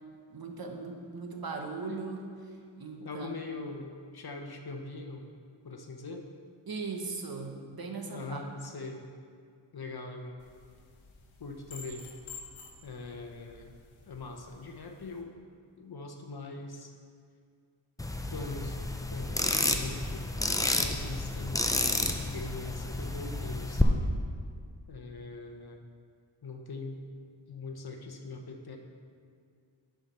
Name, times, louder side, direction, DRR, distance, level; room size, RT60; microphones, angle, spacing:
voice 1, 0.3-2.3 2.8-3.3 3.6-3.7 6.7-8.4, right 4 dB, 50° right, 3 dB, 0.9 m, -38 dB
voice 2, 3.0-5.2 5.6-6.2 8.1-9.0 9.7-10.5 11.4-12.0 12.8-13.7 14.1-15.3 15.8-16.9 18.3-18.8 19.1-20.2 20.7-24.1 24.9-25.8 26.4-27.0 27.5-28.8, left 3 dB, 50° left, 3 dB, 0.8 m, -42 dB
sound 1, 10.4-15.2, left 4 dB, 80° left, 1.0 m, -51 dB
sound 2, 18.0-23.8, left 2 dB, 10° left, 0.4 m, -30 dB
8.6 x 4.5 x 5.5 m, 2.2 s
wide cardioid pair, 90°, 47 cm